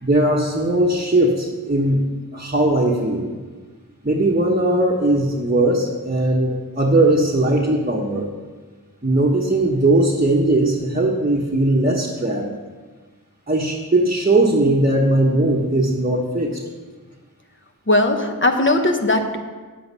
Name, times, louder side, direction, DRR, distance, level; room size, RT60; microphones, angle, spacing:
voice 1, 0.0-2.0 2.3-3.3 4.0-8.3 9.0-12.5 13.5-16.6, right 1 dB, 25° right, -2 dB, 1.1 m, -19 dB
voice 2, 17.9-19.4, left 2 dB, 35° left, 4 dB, 1.0 m, -18 dB
8.7 x 7.9 x 5.4 m, 1.4 s
wide cardioid pair, 60°, 35 cm